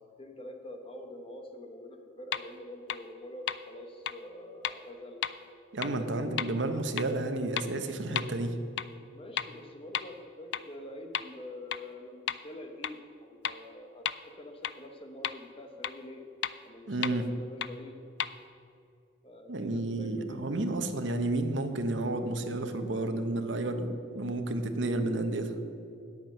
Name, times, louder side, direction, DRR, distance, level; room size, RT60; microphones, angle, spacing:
voice 1, 0.2-5.2 5.8-6.5 9.1-16.2 16.6-18.0 19.2-20.7, left 1 dB, 30° left, 4 dB, 1.0 m, -46 dB
sound 1, 2.3-2.4 2.9-3.0 3.5-3.6 4.1-4.2 4.6-4.7 5.2-5.3 5.8-5.9 6.4-6.5 7.0-7.1 7.6-7.7 8.2-8.3 8.8-8.9 9.4-9.5 9.9-10.0 10.5-10.6 11.1-11.2 11.7-11.8 12.3-12.4 12.8-12.9 13.4-13.5 14.1-14.2 14.6-14.7 15.2-15.3 15.8-15.9 16.4-16.5 17.0-17.1 17.6-17.7 18.2-18.3, left 10 dB, 60° left, 0.3 m, -31 dB
voice 2, 5.7-8.6 16.9-17.3 19.5-25.5, right 2 dB, 70° right, 7 dB, 0.9 m, -31 dB
8.9 x 8.4 x 6.1 m, 2.6 s
head